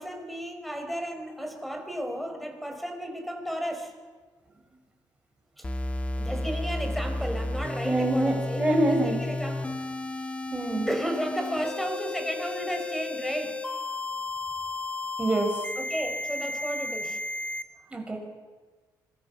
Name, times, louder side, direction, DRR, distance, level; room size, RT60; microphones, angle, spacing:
voice 1, 0.0-3.9 5.6-5.7 6.2-9.7 10.2-10.3 10.9-13.5 15.8-17.2, equal, ahead, 4 dB, 5.0 m, -33 dB
sound 1, 5.6-17.6, left 2 dB, 15° left, 1.9 m, -33 dB
voice 2, 7.8-9.2 10.5-10.9 15.2-15.5 17.9-18.2, right 1 dB, 15° right, 1 dB, 6.6 m, -25 dB
26.0 x 23.0 x 7.1 m, 1.4 s
cardioid pair, 120°, 7 cm